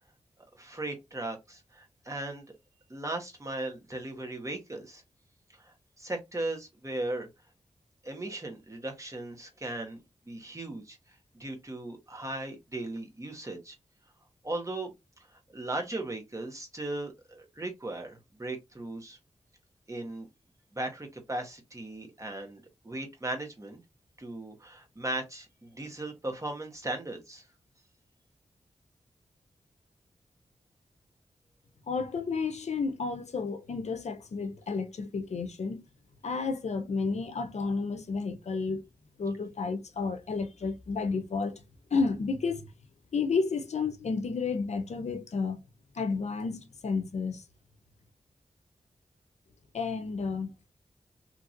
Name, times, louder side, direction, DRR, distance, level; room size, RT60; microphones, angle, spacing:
voice 1, 0.5-2.5 2.9-5.0 5.5-7.3 8.0-13.8 14.4-14.9 15.3-19.2 19.9-20.3 20.7-23.8 24.2-27.4, right 2 dB, 25° right, 1.2 m, -37 dB
voice 2, 31.9-35.8 36.2-38.8 39.2-41.6 41.9-42.7 43.1-45.6 45.9-47.4 49.7-50.5, left 4 dB, 65° left, 0.6 m, -31 dB
2.9 x 2.6 x 2.4 m
cardioid pair, 60°, 12 cm